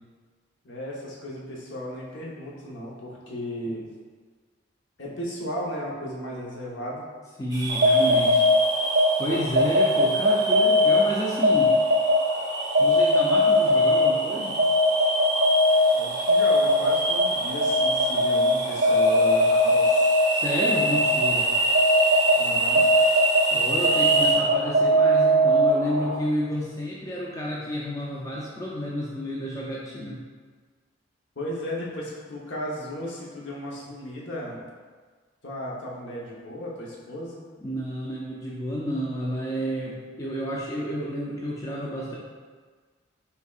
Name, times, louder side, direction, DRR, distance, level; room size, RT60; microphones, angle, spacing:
voice 1, 0.6-3.9 5.0-7.0 15.9-20.1 22.4-22.9 31.4-34.7 35.4-37.4, equal, 65° left, -5 dB, 1.0 m, -35 dB
voice 2, 7.4-8.5 9.2-11.7 12.8-14.6 20.3-21.5 23.5-30.2 37.6-42.2, equal, 15° left, -4 dB, 0.4 m, -30 dB
sound 1, 7.5-24.3, right 2 dB, 20° right, 0.7 m, -28 dB
sound 2, 7.7-26.2, left 1 dB, 60° right, 0.4 m, -21 dB
5.5 x 3.4 x 2.4 m, 1.5 s
head